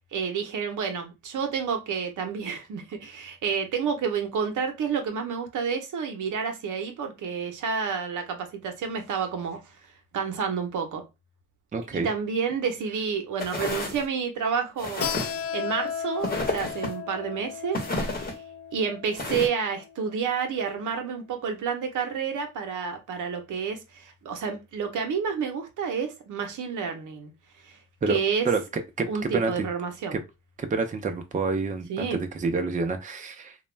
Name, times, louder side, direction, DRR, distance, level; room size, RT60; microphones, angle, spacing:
voice 1, 0.1-9.6 10.1-11.0 11.9-18.4 18.7-27.3 27.6-27.8 28.1-28.5 29.1-30.2 31.9-32.2, right 6 dB, 75° right, 0.7 m, -30 dB
voice 2, 11.7-12.1 28.0-28.2 28.4-29.7 30.1-30.2 30.6-33.6, right 4 dB, 25° right, 0.5 m, -28 dB
sound 1, 13.4-14.0 14.8-15.4 16.2-16.9 17.7-18.3 19.1-19.5, left 2 dB, 30° left, 0.9 m, -31 dB
Keyboard (musical), 15.0-20.3, left 8 dB, 50° left, 0.4 m, -35 dB
2.3 x 2.2 x 3.1 m
cardioid pair, 75°, 31 cm